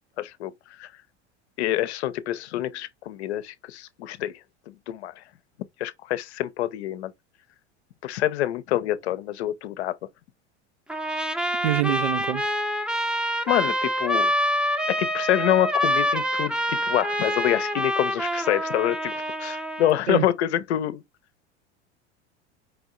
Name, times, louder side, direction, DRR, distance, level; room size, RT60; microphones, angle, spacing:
voice 1, 0.2-0.9 1.6-5.2 5.8-7.1 8.0-10.0 13.5-14.3 14.9-21.0, left 13 dB, 70° left, 0.7 m, -26 dB
Trumpet, 10.9-20.0, equal, 5° right, 0.7 m, -26 dB
voice 2, 11.6-12.4 20.1-20.3, right 13 dB, 65° right, 0.6 m, -25 dB
4.8 x 3.5 x 2.3 m
figure-of-eight pair, 80°, 34 cm